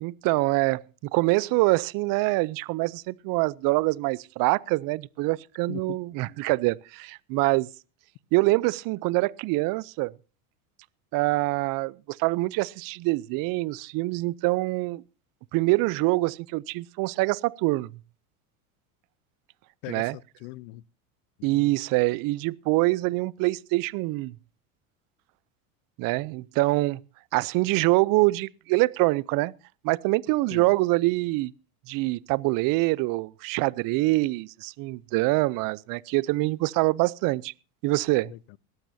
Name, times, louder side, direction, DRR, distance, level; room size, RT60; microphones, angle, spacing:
voice 1, 0.0-0.8 1.1-7.7 8.3-10.1 11.1-15.0 15.5-17.9 19.9-20.2 21.4-24.3 26.0-27.0 27.3-29.5 29.8-31.5 31.9-37.5 37.8-38.3, right 22 dB, 50° right, 0.6 m, -25 dB
voice 2, 19.8-20.8 21.4-21.7 30.5-30.7 38.3-38.6, left 20 dB, 65° left, 0.7 m, -41 dB
20.0 x 15.0 x 2.7 m
supercardioid pair, 105°, 43 cm